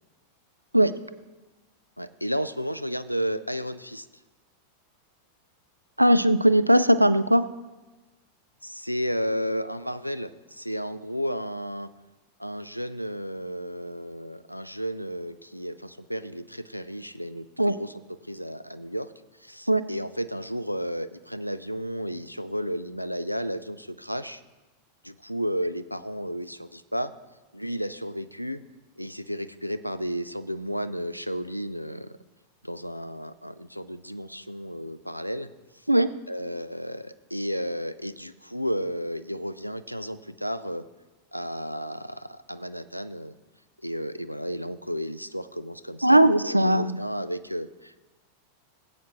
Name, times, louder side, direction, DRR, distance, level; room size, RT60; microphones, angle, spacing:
voice 1, 2.0-4.1 8.6-11.9 12.4-17.9 18.3-19.1 19.4-24.4 25.0-27.1 27.5-28.6 29.0-32.2 32.6-35.5 36.3-40.8 41.3-43.3 43.8-48.0, equal, 90° left, 14 dB, 0.4 m, -33 dB
voice 2, 6.0-7.5 17.6-17.7 19.7-19.8 35.9-36.1 46.0-47.0, right 1 dB, 85° right, 14 dB, 0.4 m, -19 dB
18.5 x 8.3 x 3.0 m, 1.2 s
figure-of-eight pair, 90°, 0 cm